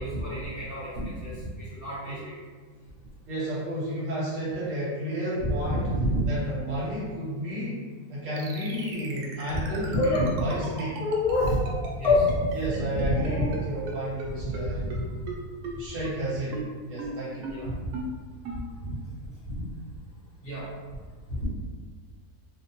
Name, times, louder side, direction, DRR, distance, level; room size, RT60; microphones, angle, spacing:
voice 1, 0.0-2.4 5.4-6.3 9.5-9.7 9.9-10.0 10.3-10.4 11.4-11.6 11.9-12.4 12.9-13.5 14.3-15.0 17.5-18.0 18.8-19.0 19.5-19.6 20.4-20.7 21.3-21.5, right 1 dB, 45° left, -10 dB, 1.0 m, -30 dB
voice 2, 3.3-5.9 6.3-7.8 8.1-11.0 12.5-14.8 15.8-17.5, equal, 60° right, -8 dB, 1.1 m, -32 dB
sound 1, 8.4-13.6 13.9-14.0 14.2-14.3 14.5-14.6 14.9-15.0 15.3-15.4 15.6-15.7 16.0-16.1 16.5-16.6 17.0-17.1 17.4-17.5 17.9-18.0 18.4-18.6, right 6 dB, 85° right, 1.1 m, -36 dB
sound 2, 10.0-10.2 11.0-11.5 12.0-12.2 13.1-13.5, left 3 dB, 75° left, 1.1 m, -24 dB
2.7 x 2.1 x 2.8 m, 1.5 s
omnidirectional pair, 1.6 m